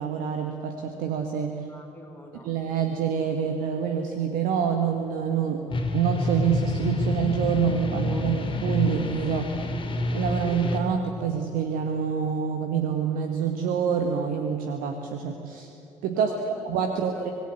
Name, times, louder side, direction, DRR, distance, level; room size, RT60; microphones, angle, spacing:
voice 1, 0.0-1.5 2.4-5.6 5.9-9.5 10.1-15.7 16.0-16.3 16.6-17.3, right 7 dB, 60° right, 5 dB, 1.8 m, -26 dB
voice 2, 1.7-2.8 16.1-17.2, left 1 dB, 10° left, 4 dB, 4.5 m, -45 dB
sound 1, 5.7-10.8, left 1 dB, 30° left, 3.1 m, -28 dB
26.0 x 20.5 x 7.9 m, 3.0 s
figure-of-eight pair, 50°, 16 cm